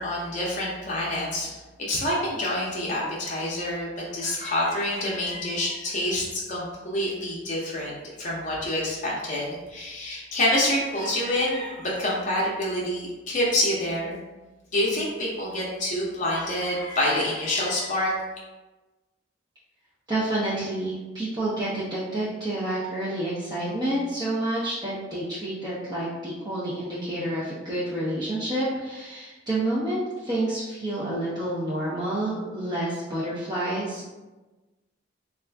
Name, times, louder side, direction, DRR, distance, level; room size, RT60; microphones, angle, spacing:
voice 1, 0.0-1.5 1.9-14.2 14.7-18.2, left 1 dB, 40° left, -5 dB, 0.6 m, -27 dB
voice 2, 20.1-34.1, right 1 dB, 20° right, -9 dB, 0.6 m, -29 dB
3.5 x 2.4 x 3.3 m, 1.2 s
head